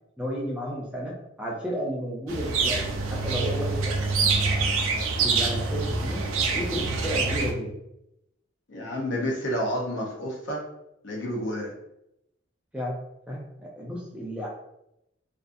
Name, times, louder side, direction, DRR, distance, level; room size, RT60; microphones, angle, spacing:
voice 1, 0.2-4.7 5.2-7.8 12.7-13.0 13.3-14.5, equal, 5° right, -4 dB, 0.3 m, -33 dB
sound 1, 2.3-7.5, right 4 dB, 75° right, 0.4 m, -26 dB
voice 2, 8.7-10.7 11.0-11.7, equal, 60° left, -1 dB, 0.6 m, -30 dB
2.4 x 2.4 x 2.5 m, 0.83 s
head